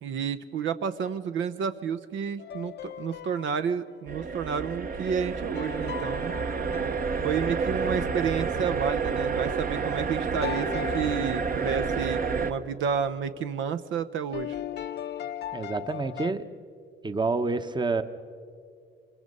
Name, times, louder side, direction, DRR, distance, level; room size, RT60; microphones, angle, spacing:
voice 1, 0.0-6.3 7.2-14.6, right 7 dB, 75° right, 10 dB, 0.8 m, -30 dB
sound 1, 2.4-3.9 5.6-7.8 10.4-12.4 14.3-16.3, left 11 dB, 55° left, 0.7 m, -38 dB
sound 2, 4.1-12.5, right 5 dB, 45° right, 1.1 m, -29 dB
voice 2, 15.5-16.5 17.0-18.0, right 3 dB, 20° right, 10 dB, 1.0 m, -28 dB
25.5 x 22.5 x 5.4 m, 2.3 s
cardioid pair, 90°, 20 cm